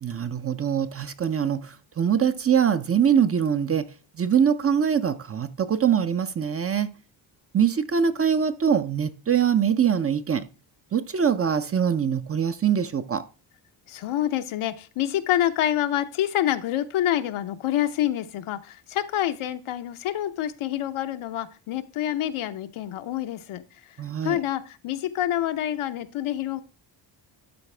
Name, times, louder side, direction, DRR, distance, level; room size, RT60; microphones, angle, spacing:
voice 1, 0.0-3.9 4.2-6.9 7.5-10.4 10.9-13.2 24.0-24.4, right 8 dB, 30° right, 0.5 m, -23 dB
voice 2, 13.9-23.6 24.2-26.6, left 12 dB, 80° left, 0.8 m, -27 dB
12.0 x 4.1 x 3.3 m
cardioid pair, 95°, 48 cm